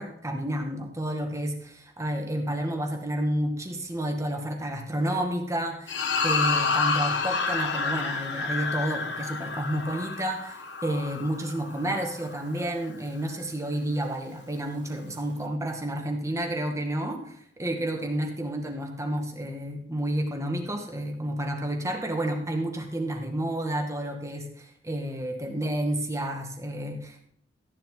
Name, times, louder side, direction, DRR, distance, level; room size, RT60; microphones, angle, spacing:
voice 1, 0.0-6.0 6.2-27.3, right 1 dB, 15° right, 3 dB, 2.0 m, -30 dB
sound 1, 5.9-12.4, left 4 dB, 70° left, 1.4 m, -29 dB
14.0 x 10.5 x 3.9 m, 0.66 s
head